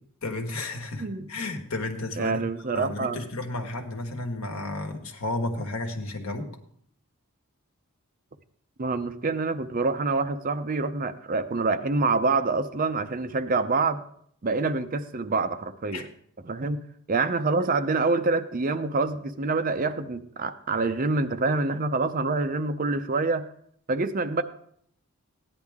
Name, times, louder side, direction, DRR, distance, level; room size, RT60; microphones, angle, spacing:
voice 1, 0.2-2.5 2.7-6.5 15.9-16.0, left 2 dB, 75° left, 4 dB, 1.5 m, -32 dB
voice 2, 2.2-3.2 8.8-14.0 14.4-16.1 16.4-16.8 17.1-23.5 23.9-24.4, right 3 dB, 40° right, 10 dB, 0.5 m, -26 dB
15.0 x 9.9 x 3.6 m, 0.66 s
head